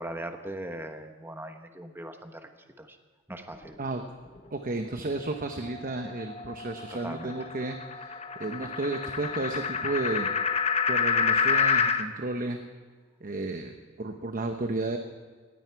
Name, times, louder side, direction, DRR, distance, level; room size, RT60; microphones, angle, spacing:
voice 1, 0.0-2.5 2.8-3.0 3.3-3.8 6.9-7.5, right 1 dB, 10° right, 6 dB, 1.1 m, -39 dB
voice 2, 4.5-10.3 10.9-12.6 13.2-15.0, right 2 dB, 45° right, 5 dB, 0.9 m, -33 dB
sound 1, 5.3-12.1, left 5 dB, 30° left, 0.8 m, -28 dB
19.0 x 15.5 x 4.7 m, 1.5 s
head